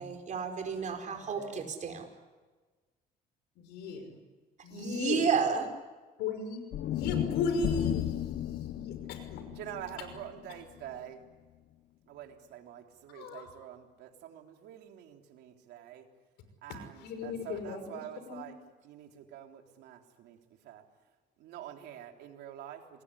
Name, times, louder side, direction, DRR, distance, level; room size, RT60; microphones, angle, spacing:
voice 1, 0.0-2.1 4.7-5.7, right 6 dB, 45° right, 4 dB, 4.9 m, -31 dB
voice 2, 0.8-1.6 3.6-4.2 4.6-5.3 6.2-9.5 10.0-10.1 13.1-13.5 16.7-18.5, left 4 dB, 90° left, 8 dB, 5.7 m, -37 dB
sound 1, 6.7-11.0, left 13 dB, 65° left, 0.9 m, -34 dB
voice 3, 9.5-11.2 12.1-16.1 16.6-18.5 18.8-20.4 20.6-20.8 21.4-23.0, right 11 dB, 85° right, 4 dB, 3.4 m, -46 dB
27.5 x 21.0 x 10.0 m, 1.3 s
cardioid pair, 110°, 17 cm